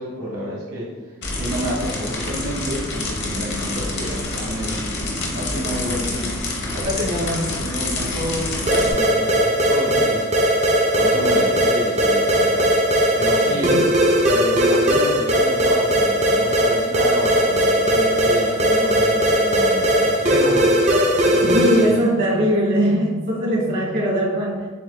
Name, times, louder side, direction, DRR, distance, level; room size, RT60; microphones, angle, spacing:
voice 1, 0.0-6.4 6.7-10.3 10.9-12.9 13.1-13.8 14.2-20.7 21.3-21.9, equal, 90° right, -5 dB, 1.2 m, -29 dB
sound 1, 1.2-8.9, left 2 dB, 55° left, 0.8 m, -27 dB
sound 2, 8.7-22.0, right 1 dB, 30° right, 0.5 m, -18 dB
voice 2, 13.5-13.8 21.4-24.7, equal, 55° right, -5 dB, 1.4 m, -20 dB
7.2 x 2.6 x 2.2 m, 1.4 s
head